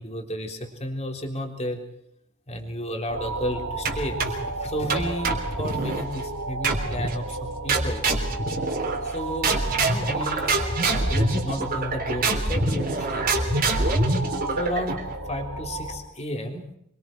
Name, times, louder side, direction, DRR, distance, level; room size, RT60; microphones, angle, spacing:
voice 1, 0.0-1.8 2.5-8.0 9.0-13.2 14.6-16.6, equal, 30° left, 3 dB, 3.5 m, -32 dB
sound 1, 3.1-16.0, right 2 dB, 85° right, 3.1 m, -34 dB
sound 2, 3.9-4.5 4.9-6.1 6.6-7.2 7.7-9.1 9.4-15.1, right 2 dB, 45° right, 3.6 m, -25 dB
27.5 x 23.0 x 4.6 m, 0.74 s
head